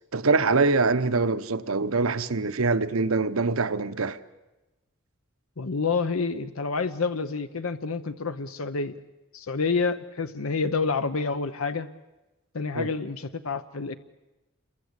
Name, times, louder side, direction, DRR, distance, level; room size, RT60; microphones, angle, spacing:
voice 1, 0.1-4.2 12.7-12.9, right 3 dB, 80° right, 1.0 m, -24 dB
voice 2, 5.6-9.0 9.3-11.9 12.5-13.9, left 4 dB, 80° left, 0.8 m, -28 dB
28.5 x 22.5 x 8.2 m
head